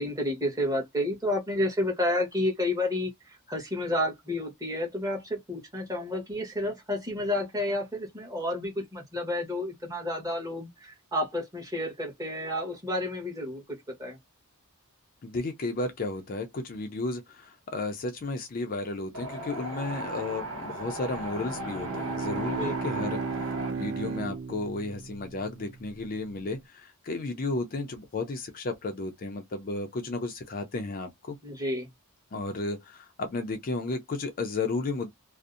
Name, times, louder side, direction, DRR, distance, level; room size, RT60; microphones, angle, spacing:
voice 1, 0.0-13.6 14.0-14.2 22.6-22.7 31.4-31.9, left 1 dB, 15° right, 1.0 m, -30 dB
voice 2, 15.2-23.3 23.7-31.4 32.3-35.1, left 3 dB, 40° left, 0.4 m, -33 dB
Wind, 19.1-23.7, right 1 dB, 65° right, 1.5 m, -36 dB
Bowed string instrument, 21.3-25.9, right 4 dB, 50° right, 0.4 m, -35 dB
2.6 x 2.0 x 2.4 m
head